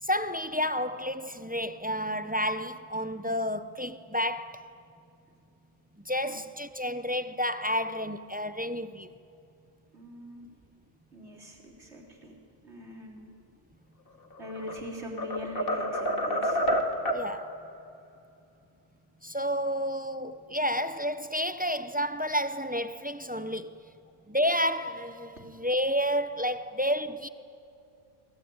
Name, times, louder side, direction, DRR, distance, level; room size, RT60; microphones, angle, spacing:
voice 1, 0.0-4.7 6.0-9.1 17.1-17.5 19.2-23.7 24.3-27.3, equal, 10° right, 0.5 m, -30 dB
voice 2, 9.9-10.5 11.1-12.3 12.6-13.2 14.4-16.6, left 1 dB, 65° right, 4.2 m, -42 dB
sound 1, 14.3-14.8 15.2-17.3, equal, 50° left, 2.0 m, -28 dB
24.5 x 24.0 x 8.8 m
omnidirectional pair, 1.3 m